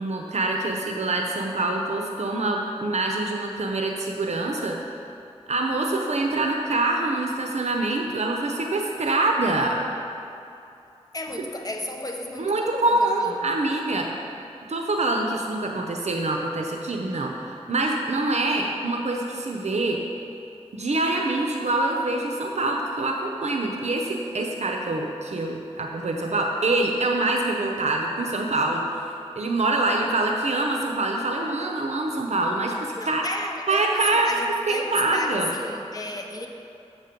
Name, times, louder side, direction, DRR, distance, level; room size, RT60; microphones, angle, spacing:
voice 1, 0.0-4.8 5.5-9.8 12.4-14.1 14.7-20.0 20.7-29.0 29.4-33.2 33.7-34.3 34.7-35.5, right 2 dB, 70° right, 1 dB, 0.7 m, -25 dB
voice 2, 11.1-13.5 33.0-36.5, left 2 dB, 30° left, 2 dB, 1.0 m, -33 dB
7.5 x 7.3 x 5.2 m, 2.7 s
cardioid pair, 50°, 12 cm